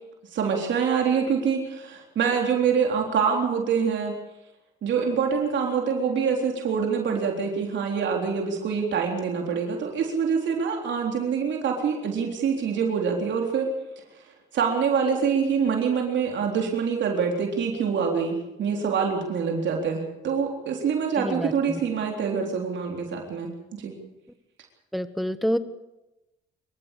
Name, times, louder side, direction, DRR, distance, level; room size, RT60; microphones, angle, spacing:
voice 1, 0.3-4.1 4.8-13.7 14.5-24.0, right 6 dB, 65° right, 1 dB, 3.8 m, -25 dB
voice 2, 21.2-21.8 24.9-25.6, equal, ahead, 11 dB, 1.5 m, -28 dB
25.0 x 14.5 x 8.4 m, 0.98 s
cardioid pair, 90°, 20 cm